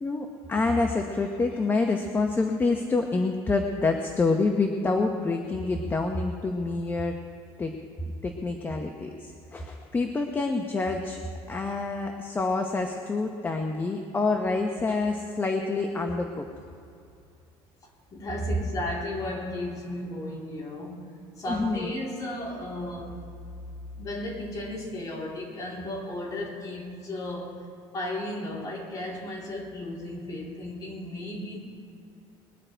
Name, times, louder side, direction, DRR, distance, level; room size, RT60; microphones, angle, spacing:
voice 1, 0.0-7.2 7.6-7.7 8.2-11.2 11.5-16.5 21.5-21.9, left 3 dB, 20° left, 3 dB, 1.0 m, -27 dB
voice 2, 18.1-21.0 21.4-23.3 24.0-27.7 27.9-31.6, left 1 dB, 35° left, -3 dB, 3.6 m, -34 dB
21.5 x 10.5 x 4.5 m, 2.6 s
cardioid pair, 135°, 11 cm